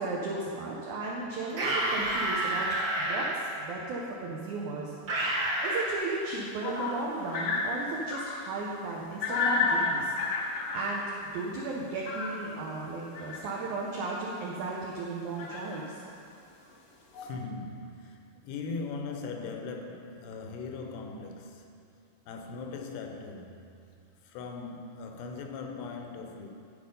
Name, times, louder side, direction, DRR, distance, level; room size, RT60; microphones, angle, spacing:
voice 1, 0.0-2.7 3.0-4.9 5.6-10.1 10.4-11.0 11.3-15.8, right 3 dB, 90° right, -3 dB, 1.7 m, -35 dB
sound 1, 1.5-3.3 5.1-5.9, right 1 dB, 70° right, 1.1 m, -29 dB
Keyboard (musical), 2.0-4.4, right 5 dB, 50° right, 2.2 m, -39 dB
sound 2, 5.9-8.6 9.2-11.1 11.9-12.7 13.1-13.5 14.3-14.4 14.6-14.7 15.4-15.8 16.7-16.8 17.1-17.3, left 3 dB, 65° left, 1.6 m, -31 dB
voice 2, 17.2-21.7 22.3-23.6 24.3-26.5, left 4 dB, 85° left, 4 dB, 2.8 m, -39 dB
12.5 x 4.3 x 5.3 m, 2.5 s
omnidirectional pair, 4.6 m